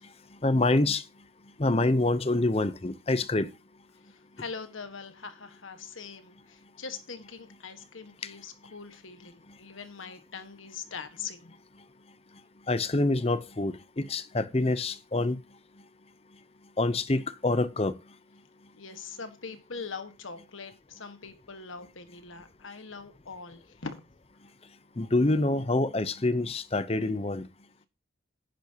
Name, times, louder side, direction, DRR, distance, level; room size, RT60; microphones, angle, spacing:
voice 1, 0.4-1.0 1.6-3.5 8.2-8.3 12.7-15.4 16.8-18.0 25.0-27.5, left 2 dB, 30° left, 0.7 m, -26 dB
voice 2, 4.4-11.5 18.7-24.0, left 5 dB, 80° left, 1.6 m, -42 dB
10.5 x 10.5 x 2.9 m
head